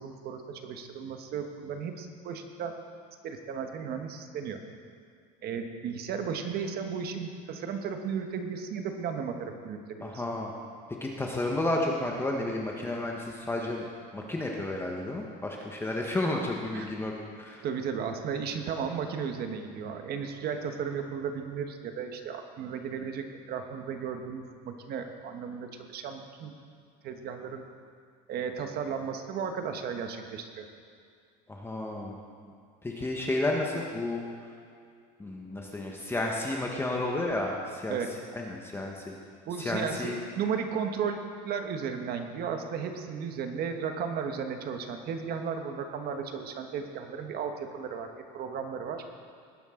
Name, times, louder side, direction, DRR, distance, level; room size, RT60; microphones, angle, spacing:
voice 1, 0.0-2.8 3.2-4.6 5.4-10.2 14.2-14.3 16.7-16.9 17.6-26.6 27.0-27.6 28.3-30.7 37.9-38.2 39.5-49.0, right 6 dB, 50° right, 5 dB, 1.3 m, -35 dB
voice 2, 10.0-10.5 11.0-13.8 14.1-17.1 17.4-17.6 31.5-32.2 32.8-34.3 35.2-38.0 38.4-39.0 39.6-40.2, left 2 dB, 10° left, -1 dB, 1.2 m, -31 dB
19.0 x 10.0 x 3.8 m, 2.2 s
cardioid pair, 130°, 21 cm